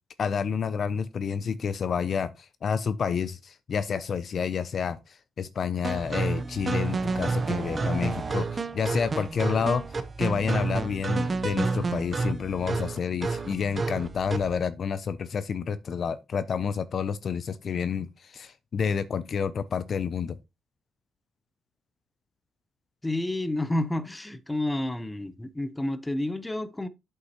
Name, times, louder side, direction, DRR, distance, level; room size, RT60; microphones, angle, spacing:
voice 1, 0.2-9.8 10.2-20.4, left 6 dB, 50° left, 0.4 m, -29 dB
sound 1, 5.8-14.6, right 3 dB, 35° right, 0.7 m, -29 dB
voice 2, 23.0-26.9, left 1 dB, 10° left, 0.7 m, -30 dB
8.1 x 5.5 x 2.9 m
cardioid pair, 90°, 0 cm